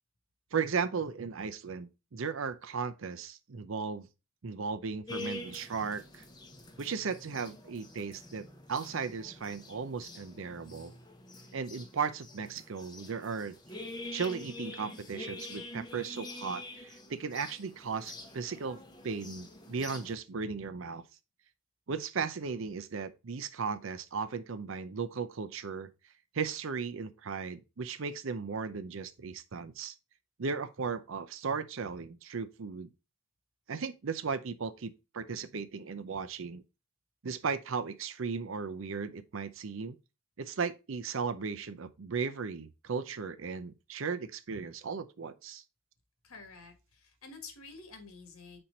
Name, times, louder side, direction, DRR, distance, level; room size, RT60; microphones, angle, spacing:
voice 1, 0.5-4.1 4.4-6.2 6.8-10.9 11.5-13.6 14.1-21.0 21.9-25.9 26.3-29.9 30.4-32.9 33.7-36.6 37.2-40.0 40.4-45.6, right 5 dB, 65° right, 0.6 m, -36 dB
sound 1, 5.1-20.1, left 2 dB, 20° left, 0.8 m, -46 dB
voice 2, 46.2-48.6, left 4 dB, 80° left, 1.6 m, -49 dB
4.4 x 4.4 x 5.0 m
head